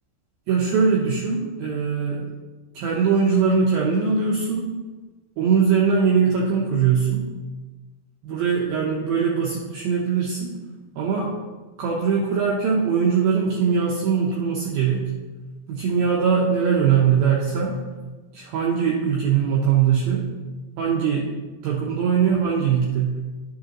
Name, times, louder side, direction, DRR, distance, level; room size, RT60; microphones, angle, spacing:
voice 1, 0.5-2.3 2.7-4.7 5.4-7.3 8.2-10.5 11.0-11.3 11.8-15.1 15.7-17.8 18.3-20.3 20.8-21.3 21.6-23.2, right 6 dB, 70° right, -3 dB, 2.4 m, -21 dB
11.5 x 6.6 x 3.0 m, 1.2 s
omnidirectional pair, 5.1 m